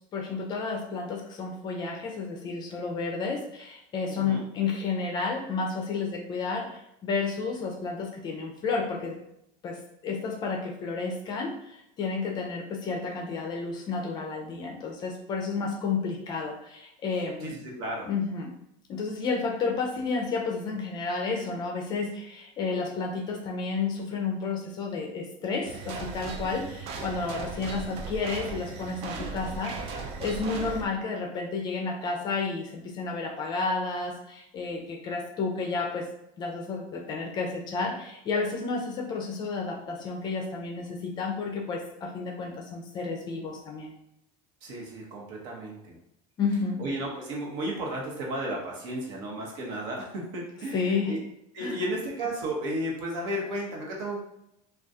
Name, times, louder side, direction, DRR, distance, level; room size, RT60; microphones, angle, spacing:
voice 1, 0.1-6.7 7.0-9.2 9.6-9.8 10.0-11.5 12.0-17.6 18.1-18.5 18.9-29.7 30.2-36.1 36.4-43.9 46.4-46.8 50.7-51.1 51.6-51.8, left 4 dB, 25° left, 0 dB, 0.5 m, -31 dB
voice 2, 4.1-4.4 17.4-18.1 44.6-45.9 46.8-51.2 51.5-54.2, right 1 dB, 70° right, -2 dB, 1.1 m, -33 dB
sound 1, 25.6-30.9, right 4 dB, 40° right, 0.4 m, -37 dB
3.6 x 2.4 x 2.7 m, 0.80 s
cardioid pair, 175°, 16 cm